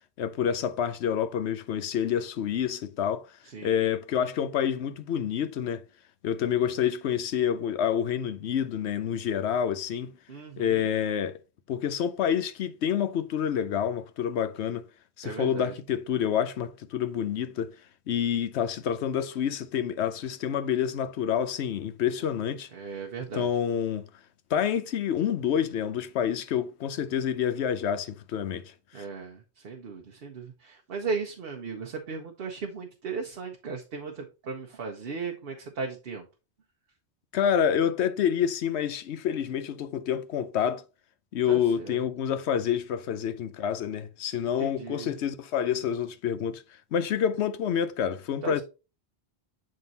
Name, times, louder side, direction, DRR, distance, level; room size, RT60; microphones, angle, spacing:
voice 1, 0.2-3.3 3.6-5.8 6.2-10.1 10.6-11.4 11.7-14.8 15.2-17.7 18.1-22.7 23.3-24.1 24.5-29.0 37.3-40.8 41.3-46.6 46.9-48.6, left 8 dB, 85° left, 0.9 m, -28 dB
voice 2, 3.4-3.9 10.3-10.9 15.2-15.7 22.7-23.5 28.9-36.2 41.5-42.0 44.6-45.1 48.4-48.6, right 5 dB, 65° right, 1.0 m, -36 dB
7.7 x 3.7 x 4.0 m
omnidirectional pair, 1.1 m